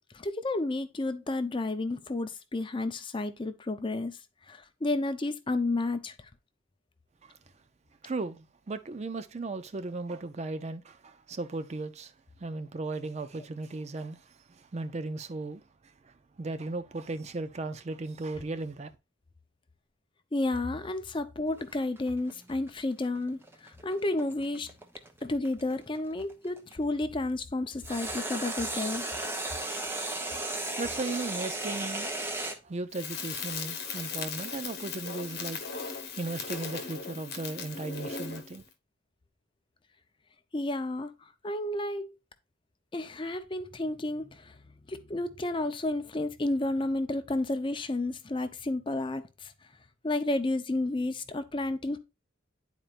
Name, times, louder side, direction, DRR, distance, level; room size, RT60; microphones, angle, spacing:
voice 1, 0.1-4.2 4.5-6.1 20.3-24.7 25.2-29.0 40.5-41.1 41.4-42.1 42.9-44.6 44.9-49.5 50.0-52.0, left 2 dB, 25° left, 0.5 m, -31 dB
voice 2, 8.0-12.1 12.4-18.9 30.8-32.1 32.6-35.6 36.1-38.6, right 3 dB, 35° right, 0.4 m, -36 dB
sound 1, 21.5-26.7 27.8-32.6, right 2 dB, 10° right, 0.8 m, -35 dB
Crackle, 32.9-38.6, left 5 dB, 50° left, 1.0 m, -38 dB
10.5 x 4.4 x 2.4 m
head